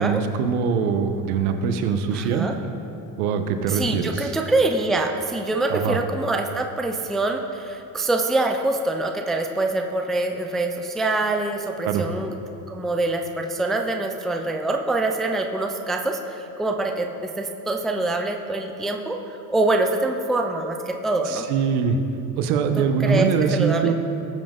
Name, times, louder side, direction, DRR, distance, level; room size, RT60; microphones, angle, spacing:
voice 1, 0.0-2.5 3.2-4.3 5.7-6.0 11.8-12.0 21.3-22.0 22.4-23.9, right 6 dB, 85° right, 7 dB, 1.2 m, -22 dB
voice 2, 2.1-2.6 3.6-19.2 19.5-21.5 22.8-23.9, right 2 dB, ahead, 3 dB, 0.3 m, -25 dB
19.5 x 7.6 x 3.9 m, 2.9 s
cardioid pair, 150°, 42 cm